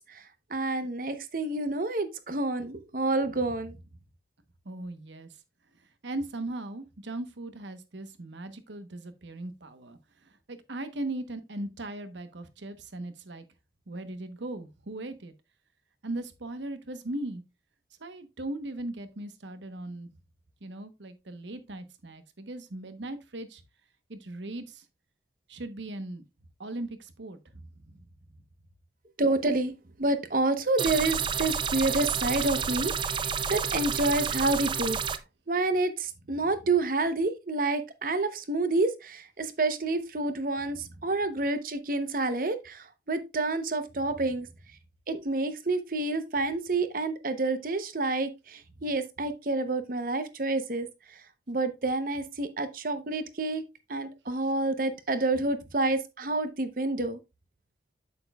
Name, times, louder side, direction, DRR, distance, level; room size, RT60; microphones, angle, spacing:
voice 1, 0.5-3.8 29.2-29.7 30.0-35.0 35.5-44.5 45.1-50.9 51.5-53.6 53.9-57.2, right 2 dB, 50° right, 0.8 m, -28 dB
voice 2, 4.6-5.3 5.8-13.4 13.9-15.3 16.0-17.4 18.0-20.1 20.6-23.6 24.1-24.8 25.5-26.2 26.6-28.1 36.3-36.5 40.7-40.8 44.2-44.3, right 2 dB, 80° right, 1.0 m, -38 dB
sound 1, 30.8-35.2, right 6 dB, 25° right, 0.4 m, -30 dB
8.4 x 7.0 x 2.3 m
head